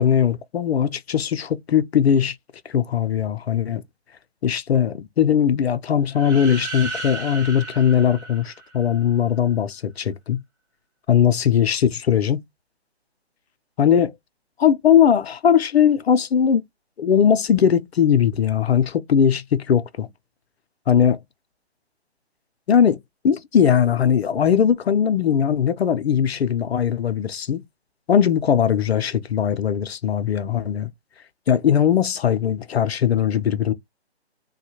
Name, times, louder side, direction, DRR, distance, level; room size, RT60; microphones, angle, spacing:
voice 1, 0.0-2.4 2.7-3.8 4.4-10.4 11.1-12.4 13.8-14.1 14.6-16.6 17.0-20.1 20.9-21.2 22.7-23.0 23.2-27.6 28.1-30.9 31.5-33.7, left 8 dB, 65° left, 0.5 m, -19 dB
sound 1, 6.1-9.0, right 3 dB, 25° right, 1.4 m, -34 dB
3.4 x 2.2 x 2.8 m
hypercardioid pair, 155°, 33 cm